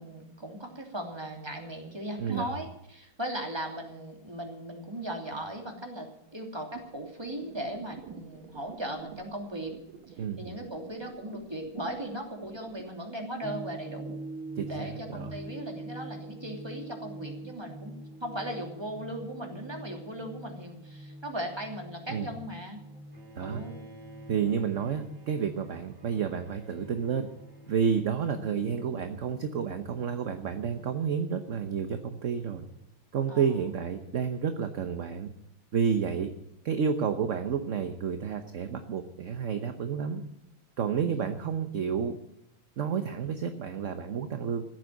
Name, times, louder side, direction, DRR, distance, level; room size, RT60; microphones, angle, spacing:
voice 1, 0.0-9.7 10.1-14.2 14.7-17.9 18.2-22.8 23.4-23.8 33.3-33.6 41.0-41.5, right 1 dB, 10° right, 2 dB, 2.9 m, -38 dB
voice 2, 2.2-2.5 10.2-10.4 14.6-15.3 22.1-22.3 23.4-23.6 24.3-27.3 27.7-32.6 33.1-35.3 35.7-36.3 36.6-40.2 40.8-42.2 42.8-44.6, right 7 dB, 50° right, 7 dB, 1.0 m, -30 dB
sound 1, 6.7-12.9, right 8 dB, 90° right, 1.8 m, -50 dB
sound 2, 13.4-32.8, right 2 dB, 80° left, 3.0 m, -46 dB
Bowed string instrument, 23.1-29.2, right 2 dB, 30° right, 2.0 m, -53 dB
15.0 x 9.2 x 9.1 m, 0.79 s
omnidirectional pair, 2.2 m